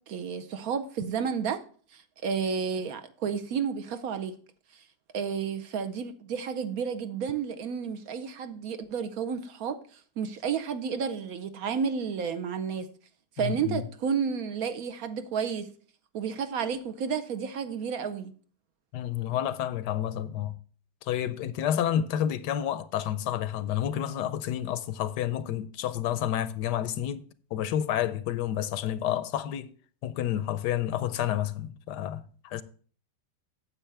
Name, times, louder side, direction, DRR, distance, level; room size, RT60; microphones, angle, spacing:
voice 1, 0.0-1.6 1.9-4.4 5.1-12.9 13.4-15.7 16.1-18.3, right 6 dB, 65° right, 1.1 m, -31 dB
voice 2, 13.4-13.8 18.9-20.6 21.0-27.2 27.5-29.7 30.0-32.6, left 11 dB, 85° left, 1.2 m, -30 dB
9.1 x 7.5 x 3.3 m
omnidirectional pair, 1.8 m